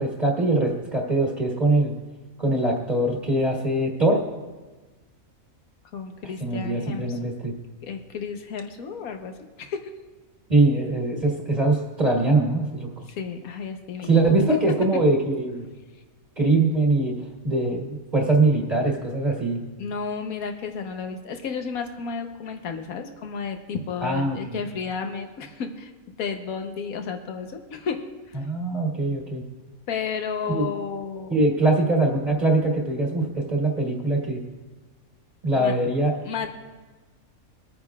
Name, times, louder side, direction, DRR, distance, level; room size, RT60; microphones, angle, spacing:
voice 1, 0.0-1.9 2.4-4.2 6.4-7.5 10.5-12.9 14.0-15.6 16.4-19.6 24.0-24.6 28.4-29.4 30.5-30.7 31.3-34.4 35.4-36.1, right 2 dB, 30° right, -2 dB, 1.6 m, -22 dB
voice 2, 5.9-7.2 7.8-9.8 13.1-14.1 14.5-14.6 19.8-25.9 26.2-28.0 28.3-28.5 29.9-31.4 35.5-35.7 36.2-36.5, left 6 dB, 85° left, 5 dB, 1.4 m, -32 dB
23.5 x 9.3 x 2.4 m, 1.3 s
omnidirectional pair, 1.5 m